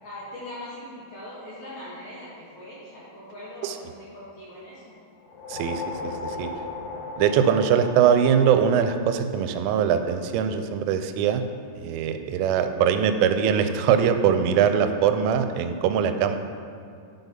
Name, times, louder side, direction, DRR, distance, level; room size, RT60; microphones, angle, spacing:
voice 1, 0.0-5.0 6.0-6.5, left 1 dB, 65° left, -8 dB, 2.3 m, -41 dB
sound 1, 5.2-9.8, left 4 dB, 90° left, 2.2 m, -36 dB
voice 2, 5.5-6.5 7.2-11.4 11.8-16.4, right 8 dB, 85° right, 8 dB, 3.0 m, -22 dB
10.5 x 4.0 x 5.3 m, 2.4 s
omnidirectional pair, 5.5 m